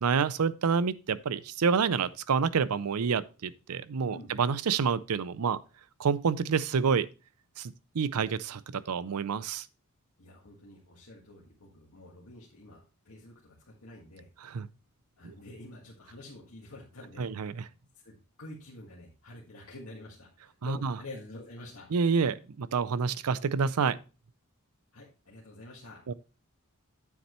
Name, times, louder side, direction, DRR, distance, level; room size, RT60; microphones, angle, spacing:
voice 1, 0.0-5.6 6.0-7.1 7.6-9.7 14.4-14.7 15.2-15.3 17.2-17.6 20.6-20.9 21.9-24.0 26.1-26.2, right 6 dB, 85° right, 0.5 m, -28 dB
voice 2, 10.2-14.3 15.2-17.6 18.0-21.9 24.9-26.0, left 1 dB, 75° left, 1.8 m, -48 dB
9.1 x 7.2 x 3.1 m
head